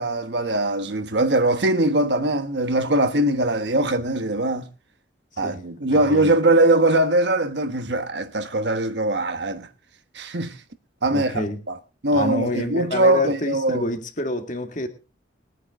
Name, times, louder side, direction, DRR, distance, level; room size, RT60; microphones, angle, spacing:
voice 1, 0.0-4.7 5.4-9.7 10.1-10.5 11.0-11.7 12.0-13.8, right 1 dB, 70° right, 1.2 m, -21 dB
voice 2, 5.9-6.3 11.1-11.6 12.1-14.9, left 1 dB, 45° left, 2.0 m, -27 dB
22.0 x 9.3 x 3.6 m
head